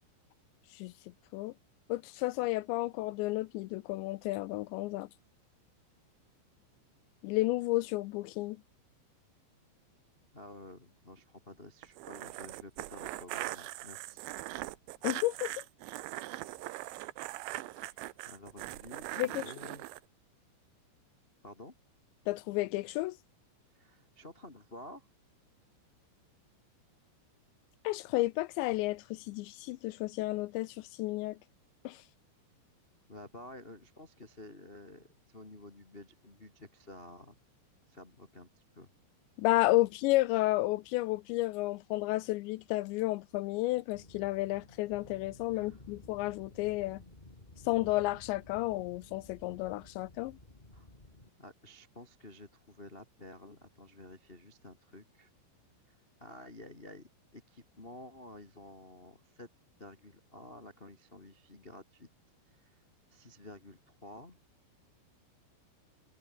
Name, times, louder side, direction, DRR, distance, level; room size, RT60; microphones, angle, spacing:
voice 1, 1.9-5.1 7.2-8.6 15.0-15.5 19.2-19.4 22.3-23.2 27.8-31.4 31.8-32.0 39.4-47.0 47.7-50.4, left 19 dB, 85° left, 2.8 m, -32 dB
voice 2, 10.3-14.3 18.3-19.8 21.4-21.7 23.7-25.1 33.1-35.1 35.3-37.3 37.9-38.5 38.7-38.9 45.5-45.8 50.7-50.9 51.4-55.3 55.9-59.5 59.8-62.1 62.5-62.8 63.1-64.4, left 1 dB, 55° left, 0.6 m, -51 dB
sound 1, 11.8-20.0, right 18 dB, 80° right, 3.2 m, -41 dB
sound 2, 43.9-51.3, left 2 dB, 15° left, 1.9 m, -54 dB
omnidirectional pair, 5.5 m